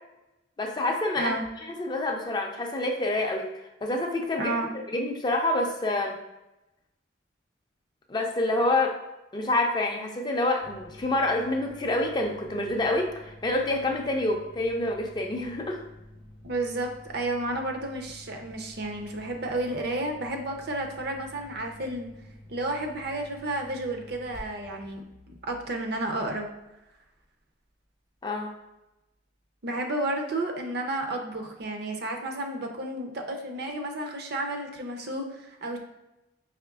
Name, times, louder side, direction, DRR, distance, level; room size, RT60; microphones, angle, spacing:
voice 1, 0.6-1.3 1.8-3.5 3.8-6.2 8.1-9.0 9.3-15.8 28.2-28.5, left 2 dB, 20° left, 2 dB, 0.4 m, -27 dB
voice 2, 4.4-4.7 16.4-22.1 22.5-26.5 29.6-35.8, right 2 dB, 55° right, 4 dB, 0.5 m, -32 dB
sound 1, 10.6-26.9, left 1 dB, 80° right, 1.2 m, -50 dB
4.9 x 3.2 x 2.3 m, 0.96 s
head